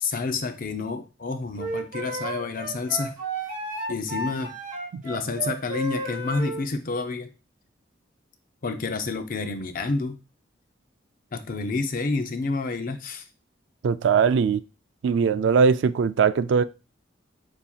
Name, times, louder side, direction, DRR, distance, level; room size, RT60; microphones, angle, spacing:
voice 1, 0.0-3.1 3.9-4.5 5.0-7.3 8.6-10.2 11.3-13.2, left 3 dB, 45° left, 0.5 m, -29 dB
Wind instrument woodwind instrument, 1.6-6.6, right 2 dB, 40° right, 1.2 m, -32 dB
voice 2, 13.8-14.6 15.0-16.6, right 6 dB, 65° right, 0.3 m, -20 dB
7.1 x 2.8 x 2.3 m
head